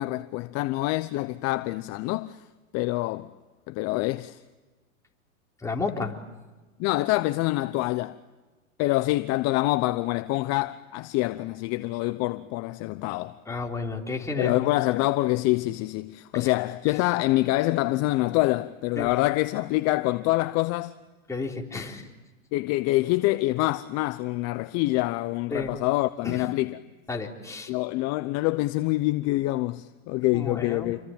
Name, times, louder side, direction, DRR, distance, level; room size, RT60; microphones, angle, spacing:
voice 1, 0.0-2.4 2.7-3.3 3.7-4.4 6.8-8.2 8.8-13.4 14.4-20.9 22.5-26.8 27.7-31.0, left 19 dB, 40° left, 0.8 m, -26 dB
voice 2, 5.6-6.2 13.5-14.5 16.4-16.5 19.0-19.1 21.3-22.0 25.5-25.7 26.2-26.4 27.1-27.7 30.3-30.9, left 3 dB, 10° left, 3.7 m, -32 dB
28.5 x 23.5 x 8.8 m
hypercardioid pair, 120°, 39 cm